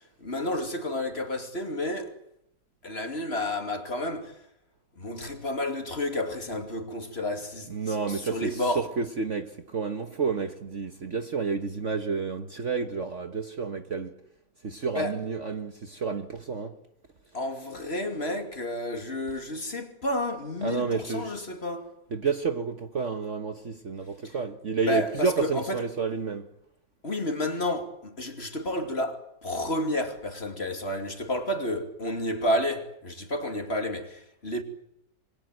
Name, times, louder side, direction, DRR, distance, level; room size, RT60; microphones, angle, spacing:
voice 1, 0.2-2.2 2.8-4.4 5.0-8.9 14.9-15.2 17.3-21.9 24.2-24.4 24.8-25.9 27.0-34.6, left 1 dB, 35° left, 2.9 m, -31 dB
voice 2, 7.7-14.1 14.6-16.8 20.6-21.3 22.1-26.5, right 5 dB, 45° right, 1.4 m, -30 dB
27.0 x 23.5 x 7.8 m
omnidirectional pair, 2.0 m